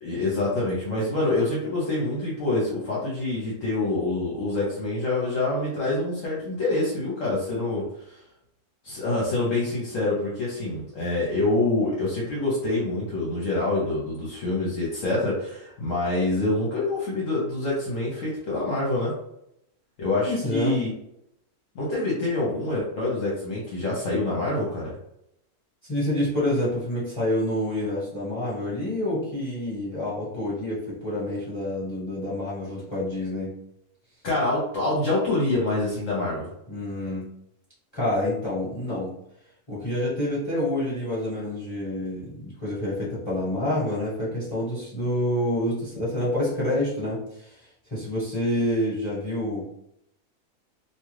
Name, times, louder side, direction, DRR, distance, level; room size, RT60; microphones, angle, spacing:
voice 1, 0.0-8.2 8.8-19.1 20.0-20.9 21.7-25.0 34.2-36.5, left 2 dB, 65° left, -5 dB, 1.0 m, -26 dB
voice 2, 20.2-20.8 25.9-33.5 36.7-37.3 37.9-39.1 39.7-49.6, left 1 dB, 20° left, -9 dB, 1.1 m, -28 dB
2.6 x 2.3 x 3.1 m, 0.78 s
omnidirectional pair, 1.6 m